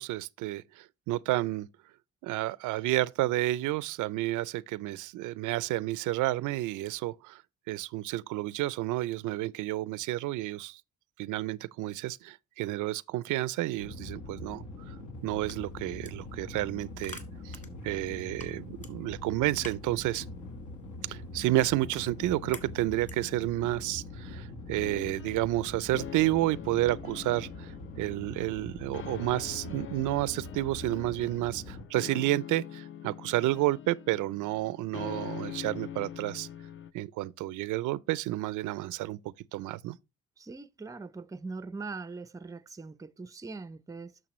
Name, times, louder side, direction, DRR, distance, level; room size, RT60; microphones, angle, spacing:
voice 1, 0.0-1.7 2.2-7.4 7.7-10.8 11.2-14.9 15.2-17.2 17.4-17.6 17.8-20.3 21.1-27.7 28.0-36.5 36.9-39.2 39.5-40.0, right 16 dB, 85° right, 0.5 m, -30 dB
sound 1, 13.8-31.8, left 2 dB, 75° left, 1.6 m, -43 dB
sound 2, 15.2-23.4, left 2 dB, 25° left, 2.0 m, -52 dB
sound 3, 24.7-36.9, left 9 dB, 45° left, 0.5 m, -44 dB
voice 2, 40.4-44.2, right 4 dB, 10° right, 0.4 m, -41 dB
8.7 x 6.5 x 3.1 m
cardioid pair, 90°, 30 cm